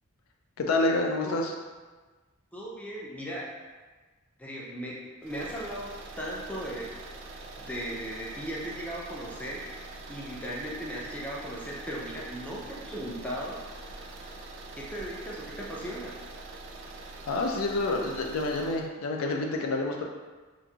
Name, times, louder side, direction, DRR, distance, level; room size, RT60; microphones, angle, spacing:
voice 1, 0.6-1.5 17.3-20.0, left 2 dB, 75° left, 1 dB, 0.4 m, -28 dB
voice 2, 2.5-3.6 4.4-7.0 7.6-13.6 14.7-16.2, equal, 5° left, -5 dB, 0.4 m, -37 dB
sound 1, 5.2-18.9, right 2 dB, 60° right, 0.3 m, -44 dB
3.0 x 2.5 x 2.3 m, 1.3 s
head